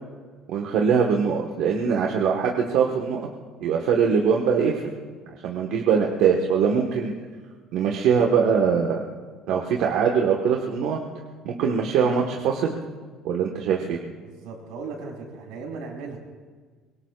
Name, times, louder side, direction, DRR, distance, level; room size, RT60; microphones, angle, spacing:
voice 1, 0.5-3.3 3.6-4.9 5.3-7.1 7.7-9.0 9.5-11.0 11.4-12.8 13.2-14.0, right 6 dB, 70° right, 0 dB, 1.3 m, -22 dB
voice 2, 14.2-16.2, right 4 dB, 90° right, -1 dB, 4.6 m, -37 dB
24.5 x 22.5 x 2.4 m, 1.5 s
cardioid pair, 160°, 0 cm